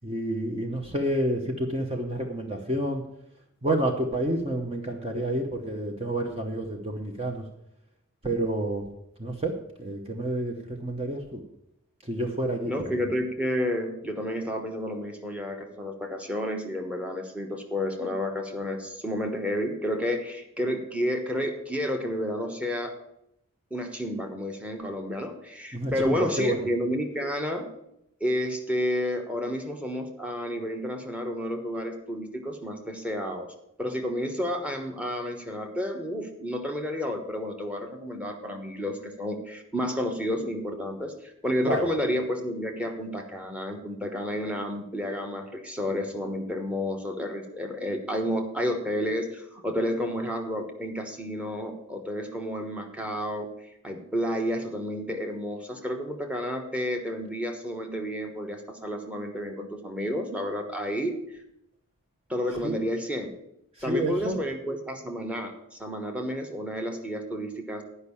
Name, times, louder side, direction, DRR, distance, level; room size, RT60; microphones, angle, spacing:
voice 1, 0.0-3.0 3.6-7.4 8.2-8.9 9.2-11.4 12.0-12.7 25.7-26.7 41.6-41.9 62.6-62.8 63.8-64.4, right 1 dB, 25° right, 2 dB, 0.9 m, -29 dB
voice 2, 12.7-23.0 23.7-27.7 28.2-33.5 33.8-53.5 53.8-61.2 62.3-63.3 63.8-67.8, equal, 5° right, 3 dB, 1.1 m, -31 dB
10.0 x 5.5 x 8.5 m, 0.80 s
head